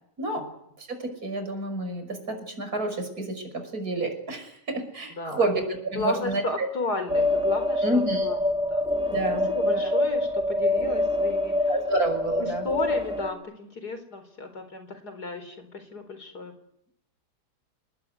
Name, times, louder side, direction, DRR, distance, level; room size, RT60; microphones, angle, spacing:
voice 1, 0.8-3.4 3.7-5.6 5.9-6.7 7.8-8.4 9.1-9.9 11.7-12.7, right 2 dB, 65° right, 6 dB, 6.4 m, -29 dB
voice 2, 5.1-5.5 5.9-8.8 9.5-11.5 12.4-16.5, left 2 dB, 70° left, 9 dB, 4.8 m, -34 dB
sound 1, 7.1-13.3, left 1 dB, 5° right, 3.2 m, -25 dB
28.5 x 20.5 x 9.7 m, 0.76 s
omnidirectional pair, 1.8 m